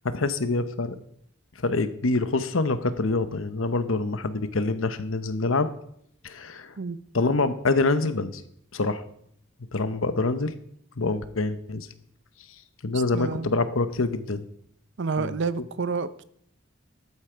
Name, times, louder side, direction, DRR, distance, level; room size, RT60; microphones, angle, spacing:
voice 1, 0.0-1.0 1.6-5.7 6.2-6.7 7.1-8.4 8.7-9.0 9.7-10.5 11.0-11.9 12.8-14.4 15.2-15.3, left 3 dB, 75° left, 0.9 m, -25 dB
voice 2, 13.1-13.6 15.0-16.2, right 4 dB, 60° right, 0.6 m, -29 dB
13.0 x 8.8 x 4.6 m
head